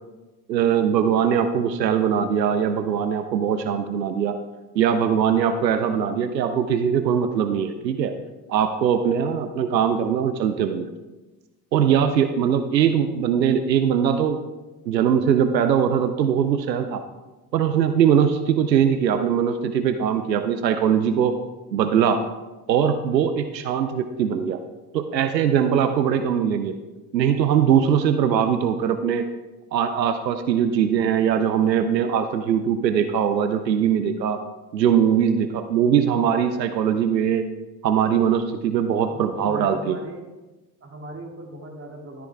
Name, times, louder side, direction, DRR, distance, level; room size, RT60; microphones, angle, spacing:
voice 1, 0.5-4.4 4.7-8.1 8.5-10.9 11.7-14.4 14.9-17.0 17.5-21.4 21.7-22.3 22.7-24.6 24.9-26.8 27.1-29.2 29.7-34.4 34.7-37.5 37.8-40.0, right 8 dB, 90° right, 9 dB, 0.6 m, -21 dB
voice 2, 39.0-40.2 40.8-42.3, right 1 dB, 25° right, 1 dB, 2.5 m, -38 dB
13.0 x 9.7 x 3.5 m, 1.1 s
figure-of-eight pair, 55°, 49 cm